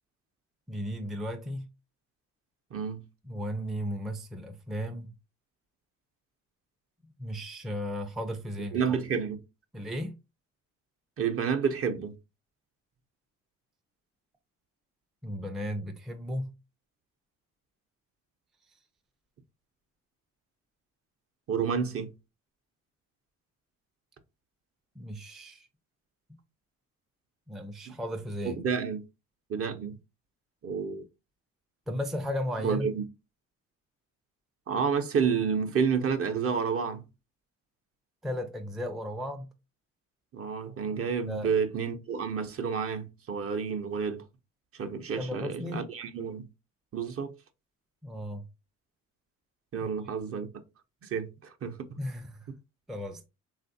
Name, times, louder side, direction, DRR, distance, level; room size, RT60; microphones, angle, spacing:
voice 1, 0.7-1.7 3.2-5.1 7.2-9.0 9.7-10.2 15.2-16.5 25.0-25.7 27.5-28.6 31.9-32.9 38.2-39.5 41.2-41.5 45.2-45.9 48.0-48.5 49.8-49.9 52.0-52.5 52.9-53.3, equal, ahead, 0.4 m, -35 dB
voice 2, 8.7-9.4 11.2-12.2 21.5-22.1 27.9-28.0 28.6-29.1 29.5-30.0 30.6-31.0 32.6-33.0 34.7-37.0 40.3-44.2 44.8-46.4 46.9-47.3 49.7-50.5 51.0-51.8, right 6 dB, 45° right, 0.6 m, -30 dB
3.3 x 2.4 x 2.6 m
supercardioid pair, 70°, 32 cm